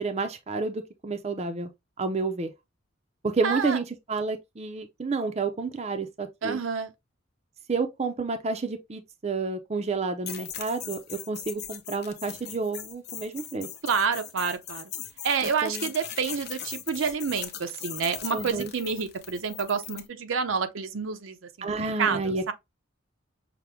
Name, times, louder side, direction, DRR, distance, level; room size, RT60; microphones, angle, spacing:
voice 1, 0.0-1.7 2.0-2.5 3.2-6.6 7.7-13.7 15.4-15.9 18.3-18.7 21.6-22.5, right 4 dB, 30° right, 0.5 m, -30 dB
voice 2, 3.4-3.8 6.4-6.9 13.8-14.9 15.2-21.7 22.0-22.5, right 5 dB, 80° right, 0.6 m, -28 dB
sound 1, 10.3-20.1, left 10 dB, 50° left, 0.8 m, -40 dB
5.8 x 2.1 x 3.4 m
head